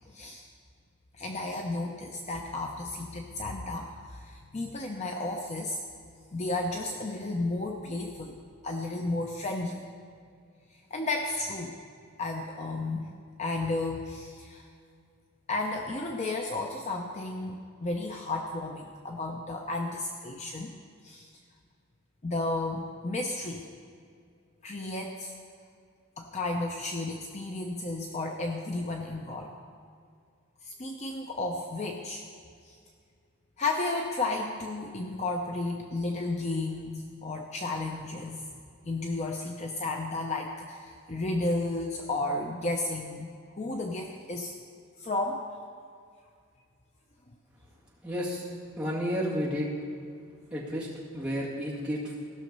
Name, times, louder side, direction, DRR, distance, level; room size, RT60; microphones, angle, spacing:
voice 1, 0.1-0.5 1.1-5.8 6.3-8.4 8.6-9.8 10.7-11.8 12.2-13.1 13.4-14.7 15.5-20.7 21.0-21.3 22.2-23.7 24.6-25.3 26.2-29.5 30.6-32.2 32.6-32.8 33.6-38.4 38.8-44.6 45.0-45.4, left 2 dB, 30° left, 2 dB, 0.6 m, -33 dB
voice 2, 48.0-48.4 48.8-49.7 50.5-50.9 51.1-52.1, equal, 5° right, -7 dB, 2.0 m, -31 dB
16.0 x 6.4 x 5.4 m, 2.3 s
head